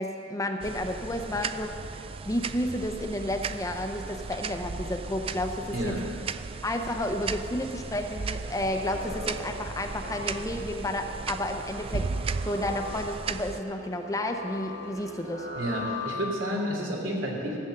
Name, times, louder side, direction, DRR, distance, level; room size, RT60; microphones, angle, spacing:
voice 1, 0.0-1.7 2.2-5.9 6.6-12.1 12.4-15.5, left 1 dB, 15° left, 4 dB, 0.7 m, -31 dB
sound 1, 0.6-13.6, right 4 dB, 30° right, 0.3 m, -36 dB
voice 2, 5.7-6.0 15.5-17.6, equal, 80° right, -2 dB, 3.0 m, -30 dB
sound 2, 8.4-16.6, left 2 dB, 65° right, 1.7 m, -41 dB
15.0 x 8.0 x 6.7 m, 2.6 s
head